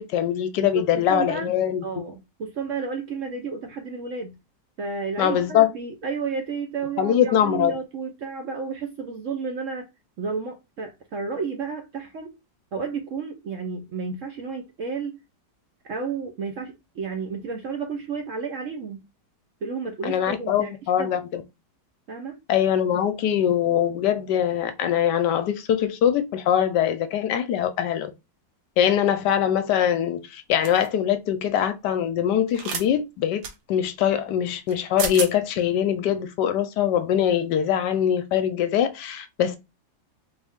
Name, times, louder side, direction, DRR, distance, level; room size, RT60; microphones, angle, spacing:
voice 1, 0.0-1.8 5.2-5.7 7.0-7.8 20.0-21.4 22.5-28.1 28.8-33.4 33.7-39.6, left 9 dB, 75° left, 1.1 m, -22 dB
voice 2, 0.6-1.5 1.8-4.4 4.8-9.9 10.2-12.4 12.7-15.2 15.9-19.1 19.6-20.7 21.0-21.2 22.1-22.4, right 5 dB, 60° right, 0.8 m, -32 dB
sound 1, 30.6-30.9 32.5-32.9 33.4-33.5 34.7-34.8 35.0-35.3, right 7 dB, 85° right, 1.5 m, -30 dB
3.8 x 2.6 x 3.5 m
omnidirectional pair, 1.9 m